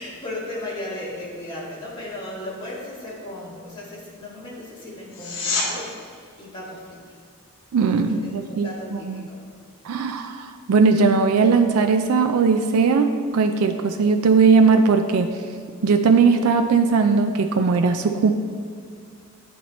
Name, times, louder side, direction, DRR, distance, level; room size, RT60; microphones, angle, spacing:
voice 1, 0.0-7.2 7.9-9.4, left 1 dB, 25° left, -7 dB, 1.9 m, -36 dB
sound 1, 5.1-5.7 17.0-17.1, left 4 dB, 65° left, 1.3 m, -26 dB
voice 2, 7.7-9.3 9.8-15.3 15.8-18.3, right 5 dB, 90° right, 6 dB, 0.4 m, -19 dB
9.2 x 4.3 x 4.1 m, 2.1 s
head